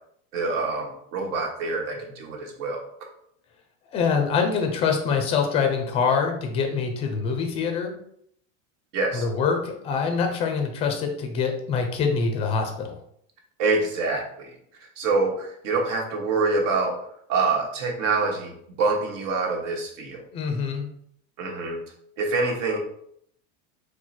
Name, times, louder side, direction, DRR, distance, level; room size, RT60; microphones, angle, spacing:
voice 1, 0.3-2.8 8.9-9.2 13.6-14.6 15.0-16.9 17.3-20.3 21.4-21.8 22.2-22.8, right 3 dB, 80° right, 1 dB, 1.3 m, -26 dB
voice 2, 3.9-7.9 9.1-13.0 20.3-20.9, left 5 dB, 15° left, 4 dB, 0.4 m, -25 dB
4.5 x 2.1 x 4.1 m, 0.69 s
supercardioid pair, 160°, 37 cm